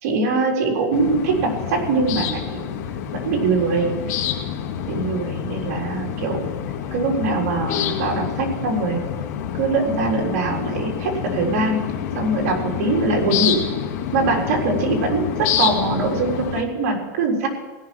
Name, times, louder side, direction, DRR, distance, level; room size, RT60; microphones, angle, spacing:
voice 1, 0.0-2.7 3.1-4.0 4.9-6.5 6.9-9.1 9.5-11.8 12.1-13.6 14.1-17.5, right 3 dB, 70° right, -1 dB, 4.0 m, -22 dB
sound 1, 0.9-16.6, left 9 dB, 70° left, 2.0 m, -27 dB
16.5 x 5.8 x 9.3 m, 1.2 s
supercardioid pair, 145°, 9 cm